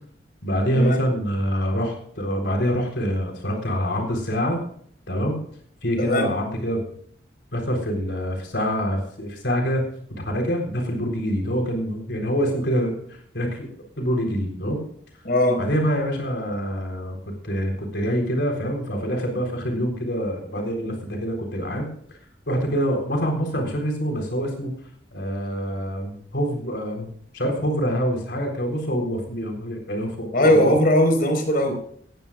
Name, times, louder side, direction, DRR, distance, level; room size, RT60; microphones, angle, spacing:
voice 1, 0.4-4.6 5.1-5.4 5.8-6.8 7.5-13.7 14.0-14.8 15.6-21.9 22.5-24.7 25.1-30.7, equal, 75° left, 2 dB, 3.9 m, -25 dB
voice 2, 15.2-15.6 30.3-31.8, left 1 dB, 55° left, 5 dB, 4.7 m, -19 dB
20.0 x 16.0 x 2.4 m, 0.62 s
head